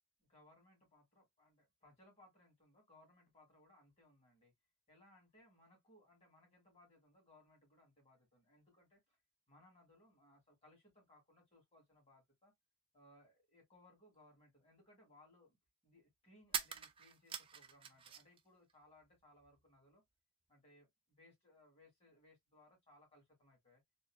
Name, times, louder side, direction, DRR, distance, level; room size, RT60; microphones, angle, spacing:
voice 1, 0.3-4.5 4.9-9.2 9.5-12.5 12.9-15.6 15.8-20.0 20.5-23.8, left 1 dB, 30° left, 2.2 m, -67 dB
sound 1, 14.2-14.3 16.4-18.4 18.7-19.6, right 7 dB, 25° right, 0.3 m, -45 dB
3.6 x 2.7 x 2.3 m
head